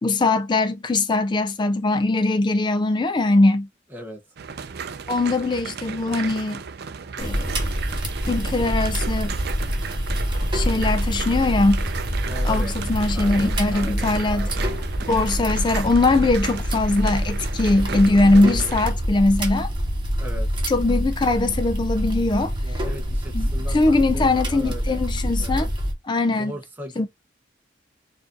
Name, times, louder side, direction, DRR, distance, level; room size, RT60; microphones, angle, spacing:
voice 1, 0.0-3.7 5.1-6.6 7.2-7.5 8.3-9.3 10.5-11.8 12.4-14.5 15.1-19.7 20.7-22.5 23.3-25.7 26.1-26.5 27.0-27.1, left 2 dB, 25° left, 0.3 m, -21 dB
voice 2, 3.9-4.2 12.2-12.7 13.1-14.7 16.0-16.3 17.9-18.8 20.2-20.5 22.6-25.0 25.4-25.7 26.3-27.1, equal, 10° right, 0.9 m, -38 dB
sound 1, 4.4-18.9, right 6 dB, 60° right, 0.4 m, -35 dB
sound 2, 7.2-25.9, equal, 25° right, 1.2 m, -26 dB
4.8 x 2.5 x 2.5 m
head